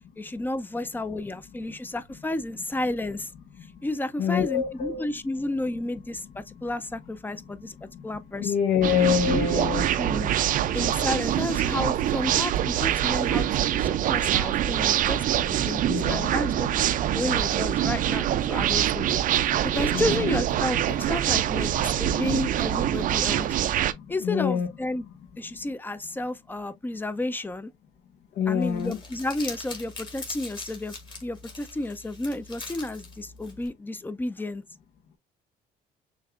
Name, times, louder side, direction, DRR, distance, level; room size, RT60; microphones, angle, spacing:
voice 1, 0.2-3.3 3.8-8.5 9.3-10.3 10.7-16.7 17.1-19.1 19.3-23.6 24.1-25.0 25.4-27.7 28.5-30.9 31.2-34.6, left 2 dB, 10° left, 0.4 m, -31 dB
voice 2, 4.2-5.0 8.4-9.9 15.9-16.4 19.9-20.3 24.2-24.7 28.4-29.0, left 8 dB, 70° left, 0.9 m, -25 dB
sound 1, 8.8-23.9, right 11 dB, 55° right, 0.4 m, -25 dB
Crumpling crinkling, 28.6-33.7, left 3 dB, 30° left, 2.0 m, -42 dB
6.3 x 2.4 x 2.4 m
cardioid pair, 110°, 17 cm